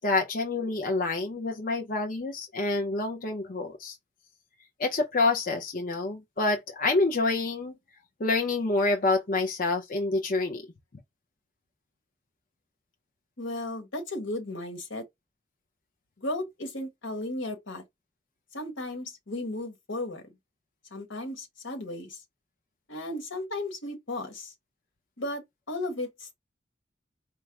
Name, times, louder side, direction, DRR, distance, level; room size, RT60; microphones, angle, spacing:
voice 1, 0.0-4.0 4.8-7.8 8.2-10.6, left 3 dB, 45° left, 0.6 m, -27 dB
voice 2, 13.4-15.0 16.2-17.8 18.5-20.2 20.9-22.2 22.9-24.5 25.2-26.3, left 1 dB, 80° left, 1.5 m, -35 dB
4.5 x 2.0 x 4.6 m
head